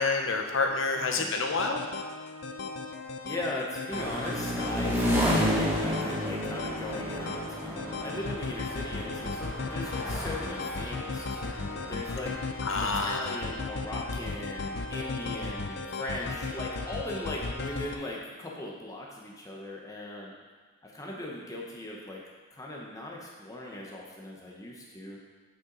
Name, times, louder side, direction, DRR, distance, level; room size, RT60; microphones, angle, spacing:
voice 1, 0.0-1.8 12.6-13.3, left 3 dB, 75° left, 3 dB, 0.9 m, -28 dB
voice 2, 1.0-1.3 3.2-12.5 12.8-20.3 20.8-22.2 22.5-25.2, left 1 dB, 15° left, -3 dB, 1.0 m, -39 dB
sound 1, 1.5-18.0, left 3 dB, 55° left, 0.5 m, -36 dB
sound 2, 3.9-12.3, equal, 10° right, 1.2 m, -31 dB
8.5 x 6.1 x 4.0 m, 1.4 s
head